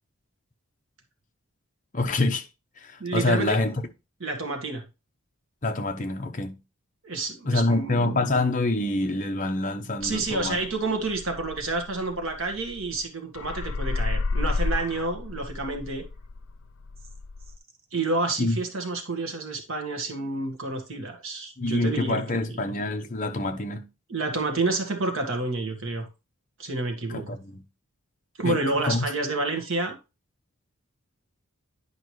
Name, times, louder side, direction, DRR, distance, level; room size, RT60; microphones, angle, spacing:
voice 1, 1.9-2.5 2.8-3.7 5.6-6.6 7.4-10.6 18.4-18.6 21.6-23.9 27.1-27.6 28.4-29.0, left 2 dB, 35° left, 0.8 m, -26 dB
voice 2, 3.0-3.6 4.2-4.8 7.0-8.2 10.0-16.0 17.9-22.4 24.1-26.1 26.6-27.4 28.4-30.0, right 3 dB, 65° right, 1.6 m, -29 dB
sound 1, 10.0-13.0 13.3-17.6, left 3 dB, 65° left, 0.4 m, -31 dB
10.0 x 5.0 x 3.1 m
head